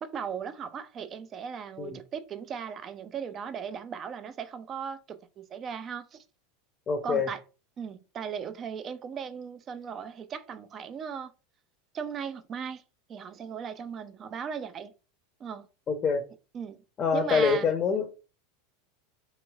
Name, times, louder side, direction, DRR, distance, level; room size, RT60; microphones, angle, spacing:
voice 1, 0.0-6.2 7.0-7.4 7.8-11.3 11.9-12.8 13.1-14.9 15.4-15.7 16.5-16.8 17.0-17.7, right 7 dB, 35° right, 0.4 m, -37 dB
voice 2, 6.9-7.3 15.9-16.2 17.0-18.1, left 5 dB, 30° left, 0.5 m, -25 dB
2.9 x 2.9 x 2.3 m
hypercardioid pair, 85°, 0 cm